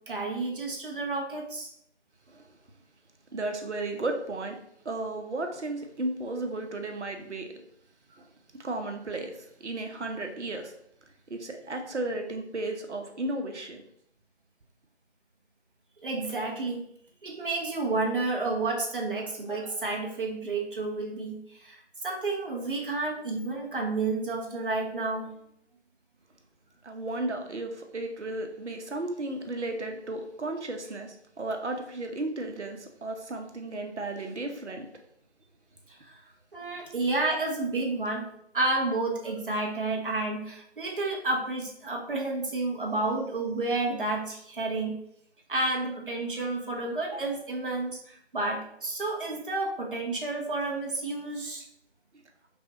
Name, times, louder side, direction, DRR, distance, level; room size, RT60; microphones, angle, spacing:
voice 1, 0.1-1.7 16.0-16.8 17.2-25.3 36.1-36.2 36.5-38.3 38.5-45.0 45.5-51.6, right 2 dB, 50° right, 0 dB, 1.0 m, -30 dB
voice 2, 3.3-7.5 8.2-8.3 8.5-10.7 11.3-13.8 26.8-34.9, right 2 dB, 80° right, 4 dB, 0.9 m, -34 dB
5.4 x 2.4 x 2.9 m, 0.71 s
figure-of-eight pair, 165°, 34 cm